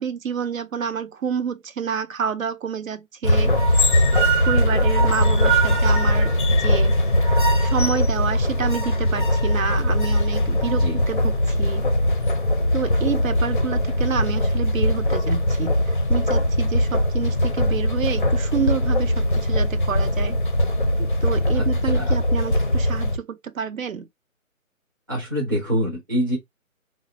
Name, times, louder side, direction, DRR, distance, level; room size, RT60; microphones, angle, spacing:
voice 1, 0.0-3.9 4.4-6.3 6.6-7.0 7.6-11.9 12.7-20.4 21.0-24.1, right 7 dB, 70° right, 0.5 m, -29 dB
sound 1, 3.2-23.2, equal, 40° left, 0.4 m, -20 dB
voice 2, 10.7-11.0 21.5-22.2 25.1-26.4, equal, 15° right, 0.6 m, -26 dB
3.7 x 2.0 x 2.7 m
figure-of-eight pair, 160°, 42 cm